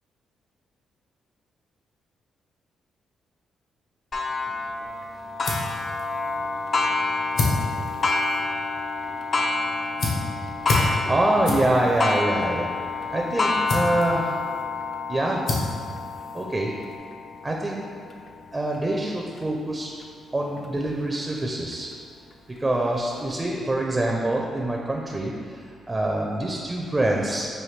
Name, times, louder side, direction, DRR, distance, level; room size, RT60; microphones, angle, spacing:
Clock, 4.1-19.4 20.0-20.1 20.6-20.7 21.7-21.8, left 3 dB, 45° left, 0.3 m, -29 dB
sound 1, 4.9-17.0, left 2 dB, 70° left, 0.9 m, -32 dB
voice 1, 11.1-12.7 13.1-14.2 15.1-15.4 16.3-16.7 17.4-17.8 18.5-19.9 20.3-21.9 22.6-27.5, right 1 dB, 20° right, -1 dB, 0.4 m, -25 dB
5.6 x 2.7 x 3.2 m, 2.2 s
cardioid pair, 95°, 0 cm